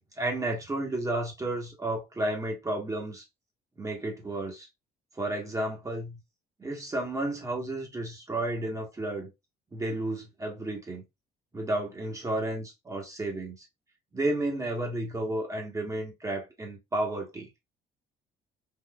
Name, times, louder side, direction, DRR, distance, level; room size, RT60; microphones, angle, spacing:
voice 1, 0.2-3.2 3.8-4.7 5.1-6.2 6.6-9.3 9.7-11.0 11.5-13.6 14.1-17.5, right 1 dB, 20° right, 1.1 m, -32 dB
3.7 x 2.4 x 2.2 m
cardioid pair, 110°, 17 cm